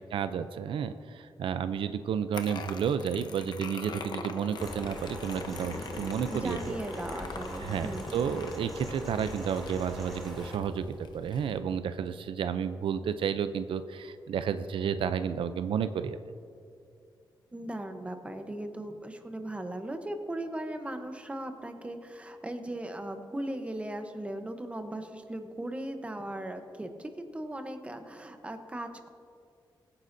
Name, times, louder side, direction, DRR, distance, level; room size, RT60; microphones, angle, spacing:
voice 1, 0.1-6.8 7.6-16.2, right 7 dB, 90° right, 11 dB, 0.4 m, -31 dB
sound 1, 2.3-11.6, left 4 dB, 60° left, 0.9 m, -43 dB
sound 2, 4.6-10.6, equal, ahead, 2.7 m, -41 dB
voice 2, 6.3-8.0 17.5-29.1, right 1 dB, 15° right, 6 dB, 0.9 m, -38 dB
22.5 x 9.6 x 2.6 m, 2.4 s
wide cardioid pair, 145°, 9 cm